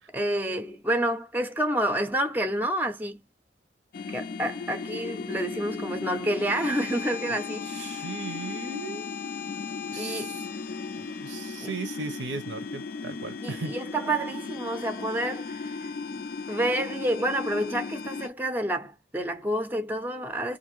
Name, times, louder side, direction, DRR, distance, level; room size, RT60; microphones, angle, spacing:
voice 1, 0.1-3.2 4.1-8.1 10.0-10.4 11.6-11.7 13.4-15.9 16.5-20.6, right 1 dB, 10° right, 0.5 m, -29 dB
sound 1, 3.9-18.3, left 4 dB, 50° left, 0.3 m, -36 dB
voice 2, 7.6-9.1 9.9-10.4 11.0-13.7, right 3 dB, 80° right, 0.7 m, -37 dB
2.6 x 2.5 x 3.0 m
head